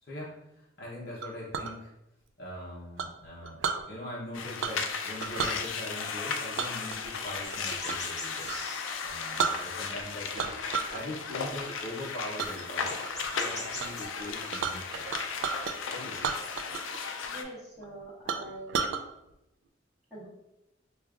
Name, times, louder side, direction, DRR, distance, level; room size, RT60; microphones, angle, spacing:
voice 1, 0.0-1.9 2.4-8.5 9.0-10.5 10.9-13.0 13.3-15.1 15.9-16.4, left 1 dB, 55° left, -6 dB, 0.7 m, -41 dB
Chink clink, 1.2-1.7 3.0-3.8 4.6-4.9 5.2-5.6 6.6-8.1 8.4-8.6 9.1-9.2 9.4-10.0 10.4-11.0 11.4-11.7 12.4-12.5 13.0-13.4 13.8-13.9 14.1-15.8 16.2-17.0 17.2-17.3 17.8-17.9 18.3-19.0, right 6 dB, 70° right, 0.3 m, -33 dB
sound 1, 4.3-17.4, left 5 dB, 90° left, 0.4 m, -36 dB
sound 2, 7.4-10.1 10.4-11.0 11.9-12.0 12.2-12.3 12.6-14.1, equal, 15° left, 0.7 m, -43 dB
voice 2, 17.3-18.8 20.1-20.3, right 1 dB, 5° right, -14 dB, 1.1 m, -44 dB
4.9 x 2.4 x 2.3 m, 0.89 s
head